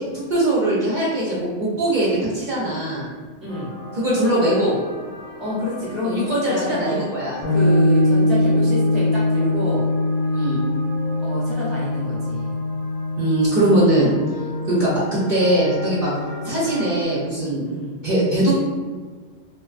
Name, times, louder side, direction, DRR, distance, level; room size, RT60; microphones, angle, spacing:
voice 1, 0.1-3.1 4.0-4.8 6.0-7.4 8.4-8.5 10.3-10.6 13.2-14.1 14.7-16.1 16.4-17.7 18.0-18.5, right 1 dB, 55° right, -8 dB, 0.6 m, -21 dB
voice 2, 3.4-3.7 5.4-6.2 6.4-7.0 7.5-9.8 11.2-12.6 17.6-18.0, left 1 dB, ahead, -7 dB, 0.4 m, -28 dB
sound 1, 3.5-17.0, left 1 dB, 55° left, 0.6 m, -38 dB
sound 2, 7.4-17.1, left 1 dB, 90° left, 1.0 m, -22 dB
2.4 x 2.2 x 2.4 m, 1.5 s
omnidirectional pair, 1.3 m